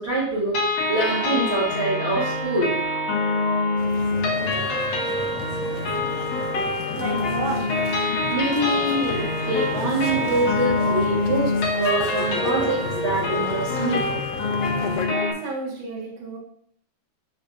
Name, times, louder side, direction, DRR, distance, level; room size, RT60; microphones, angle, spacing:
voice 1, 0.0-2.8 8.3-14.0, right 2 dB, 30° right, -8 dB, 1.3 m, -25 dB
sound 1, 0.5-15.3, left 2 dB, 65° left, 2.0 m, -25 dB
cinema antes do filme, 3.8-15.1, left 6 dB, 85° left, 2.1 m, -34 dB
voice 2, 7.0-7.6 15.0-16.4, right 2 dB, 85° right, -3 dB, 3.1 m, -31 dB
6.9 x 6.6 x 2.6 m, 0.65 s
omnidirectional pair, 3.3 m